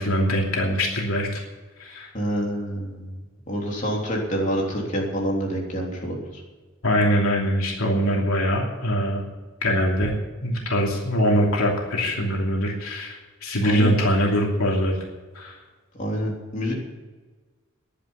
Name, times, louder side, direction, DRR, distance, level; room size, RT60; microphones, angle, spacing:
voice 1, 0.0-1.4 1.8-2.1 6.8-9.2 9.6-10.1 10.4-14.9 15.3-15.6, equal, 85° left, -1 dB, 2.9 m, -23 dB
voice 2, 2.1-3.2 3.5-6.2 13.6-13.9 16.0-16.7, equal, 35° left, -2 dB, 3.4 m, -27 dB
11.0 x 10.0 x 9.9 m, 1.3 s
head